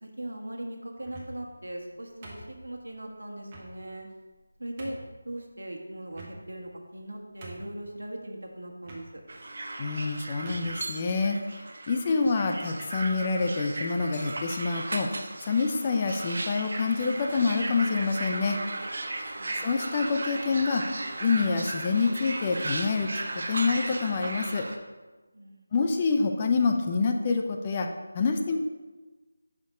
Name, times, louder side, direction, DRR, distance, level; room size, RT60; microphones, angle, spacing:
voice 1, 0.0-4.1 4.6-5.0 5.2-9.2 19.3-19.6 25.3-25.6, right 1 dB, 80° right, 2 dB, 1.3 m, -39 dB
sound 1, 1.0-1.5 2.2-2.9 3.5-3.7 4.3-4.4 4.8-5.1 6.1-6.7 7.0-7.1 7.4-7.9 8.8-9.1 9.9-10.0 10.4-10.8, right 2 dB, 25° right, 1.1 m, -46 dB
sound 2, 9.3-24.8, right 2 dB, 55° right, 0.7 m, -36 dB
voice 2, 9.8-11.4 11.9-15.1 15.5-18.6 19.6-20.8 21.2-23.2 23.5-24.7 25.7-27.9 28.1-28.6, left 4 dB, 25° left, 4 dB, 0.5 m, -26 dB
5.9 x 5.2 x 4.9 m, 1.3 s
figure-of-eight pair, 165°, 0 cm